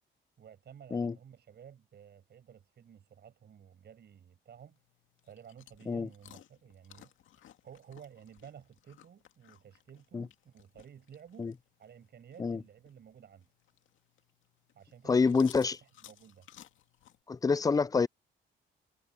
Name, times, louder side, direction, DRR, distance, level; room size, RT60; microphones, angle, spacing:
voice 1, 0.4-4.8 5.2-7.1 7.6-11.5 11.8-13.5 14.7-15.5 15.8-16.5, right 8 dB, 55° right, 7.4 m, -54 dB
sound 1, 4.6-17.2, left 11 dB, 80° left, 2.2 m, -59 dB
voice 2, 15.1-15.8 17.3-18.1, left 4 dB, 20° left, 0.4 m, -27 dB
cardioid pair, 90°, 20 cm